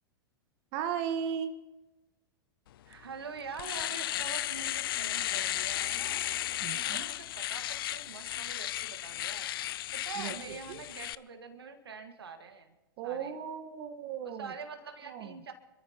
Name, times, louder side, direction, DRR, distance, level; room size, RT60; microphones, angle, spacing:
voice 1, 0.7-1.5 6.6-7.0 10.2-10.3 10.7-10.8 13.0-14.5 15.1-15.4, right 8 dB, 50° right, 7 dB, 1.2 m, -36 dB
voice 2, 2.8-6.3 6.7-9.5 9.9-12.7 13.0-13.4 14.2-15.5, right 5 dB, 85° right, 6 dB, 1.6 m, -45 dB
Domestic sounds home sounds, 2.9-3.0 3.4-11.2, left 13 dB, 70° left, 0.5 m, -34 dB
26.5 x 14.0 x 2.9 m, 1.1 s
hypercardioid pair, 105°, 13 cm